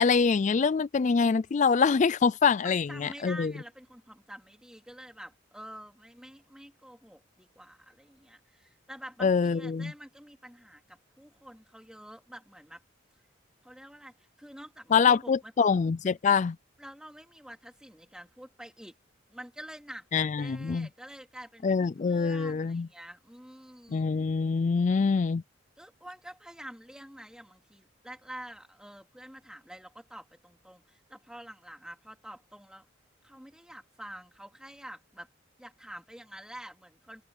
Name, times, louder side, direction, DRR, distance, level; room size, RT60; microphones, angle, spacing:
voice 1, 0.0-3.5 9.2-9.9 14.9-16.6 20.1-20.9 21.6-22.9 23.9-25.4, left 5 dB, 35° left, 0.3 m, -25 dB
voice 2, 2.6-12.8 13.6-15.7 16.8-18.9 19.3-24.1 25.8-32.9 33.2-35.3 35.6-37.2, equal, 5° right, 3.5 m, -47 dB
head